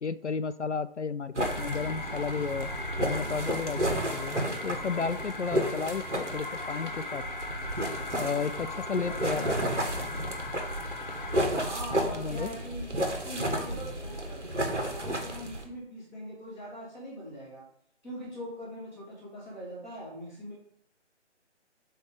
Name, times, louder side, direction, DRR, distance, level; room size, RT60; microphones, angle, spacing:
voice 1, 0.0-2.7 3.0-3.8 4.1-7.2 8.2-9.7 12.0-12.5, left 5 dB, 70° left, 13 dB, 0.6 m, -33 dB
sound 1, 1.3-15.6, right 1 dB, 75° right, 1.9 m, -32 dB
sound 2, 1.4-11.4, left 3 dB, 40° left, 0.9 m, -39 dB
voice 2, 9.0-9.9 11.6-17.6 18.0-20.5, equal, 5° right, -11 dB, 1.3 m, -41 dB
8.3 x 3.4 x 5.1 m, 0.67 s
figure-of-eight pair, 150°, 36 cm